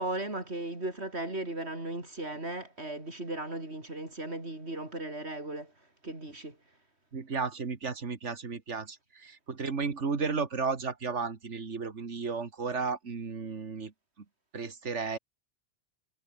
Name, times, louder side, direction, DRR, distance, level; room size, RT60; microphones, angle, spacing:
voice 1, 0.0-5.7 6.0-6.6, right 2 dB, 65° right, 5.6 m, -36 dB
voice 2, 7.1-13.9 14.5-15.2, right 5 dB, 85° right, 2.3 m, -33 dB
omnidirectional pair, 1.2 m